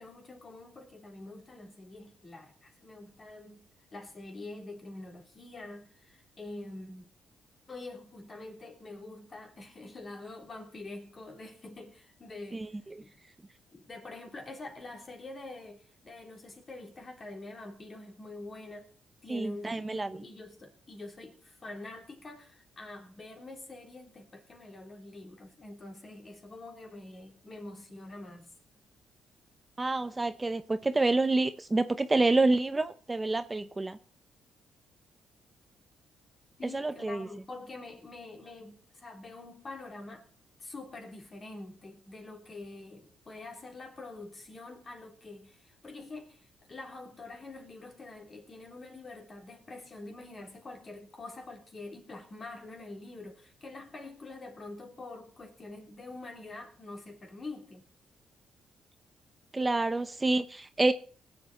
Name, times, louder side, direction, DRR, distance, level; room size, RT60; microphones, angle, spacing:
voice 1, 0.0-7.1 7.7-12.7 13.0-13.1 13.7-18.9 19.2-28.5 36.6-40.3 40.6-57.8, left 2 dB, 35° left, 3.4 m, -46 dB
voice 2, 19.3-20.2 29.8-34.0 36.7-37.3 59.5-60.9, right 2 dB, 20° right, 0.7 m, -28 dB
19.5 x 8.0 x 4.2 m
cardioid pair, 90°, 0 cm